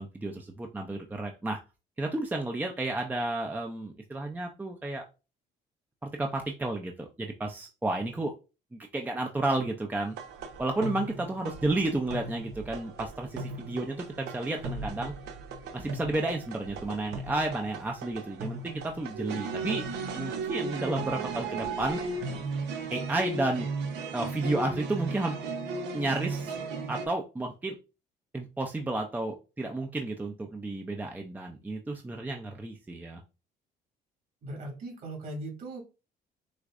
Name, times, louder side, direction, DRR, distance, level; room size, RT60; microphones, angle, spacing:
voice 1, 0.0-1.6 2.0-5.0 6.0-8.3 8.7-10.1 10.6-15.1 15.7-19.8 20.2-22.0 22.9-23.7 24.1-25.4 25.9-26.5 26.9-27.7 28.3-33.2, right 2 dB, 10° right, 3 dB, 0.5 m, -32 dB
sound 1, 10.2-27.1, right 3 dB, 85° right, 0.8 m, -36 dB
voice 2, 34.4-35.8, right 1 dB, 55° right, 0 dB, 2.4 m, -39 dB
6.4 x 2.5 x 2.5 m, 0.30 s
cardioid pair, 110°, 17 cm